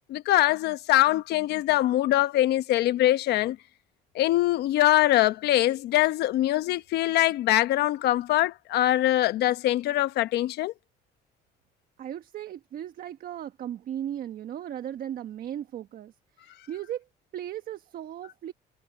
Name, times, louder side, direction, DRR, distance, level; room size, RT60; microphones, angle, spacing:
voice 1, 0.1-3.6 4.1-10.7, left 14 dB, 75° left, 1.0 m, -23 dB
voice 2, 12.0-17.0 17.3-18.5, right 10 dB, 60° right, 1.3 m, -37 dB
cardioid pair, 110°, 17 cm